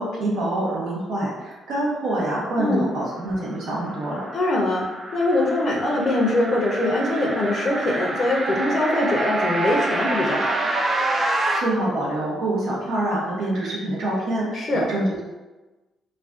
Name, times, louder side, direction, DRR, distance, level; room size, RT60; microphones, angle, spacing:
voice 1, 0.0-4.3 11.6-15.3, right 1 dB, 80° right, -5 dB, 0.7 m, -26 dB
sound 1, 3.2-11.6, right 2 dB, 40° right, 0.4 m, -27 dB
voice 2, 4.3-4.8 5.1-10.5 14.5-14.9, left 1 dB, 50° left, 0 dB, 0.5 m, -22 dB
2.4 x 2.2 x 2.4 m, 1.2 s
cardioid pair, 90°, 0 cm